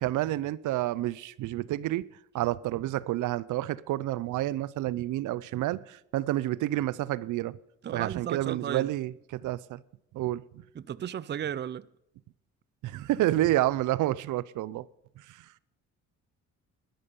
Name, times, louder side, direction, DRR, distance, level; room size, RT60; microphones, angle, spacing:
voice 1, 0.0-2.1 2.3-7.6 7.9-9.8 10.1-10.4 12.8-14.9 15.2-15.5, right 15 dB, 80° right, 0.6 m, -29 dB
voice 2, 7.8-8.9 10.7-11.9, right 9 dB, 35° right, 0.5 m, -34 dB
12.5 x 12.0 x 5.4 m
cardioid pair, 90°, 30 cm